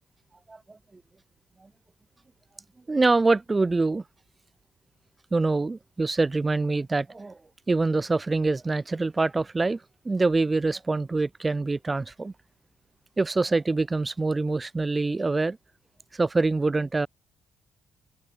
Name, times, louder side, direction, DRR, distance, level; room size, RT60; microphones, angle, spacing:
voice 1, 2.9-4.0 5.3-7.4 7.7-9.8 10.0-12.3 13.2-15.6 16.1-17.1, right 3 dB, 25° right, 3.3 m, -25 dB
open air
cardioid pair, 90°, 0 cm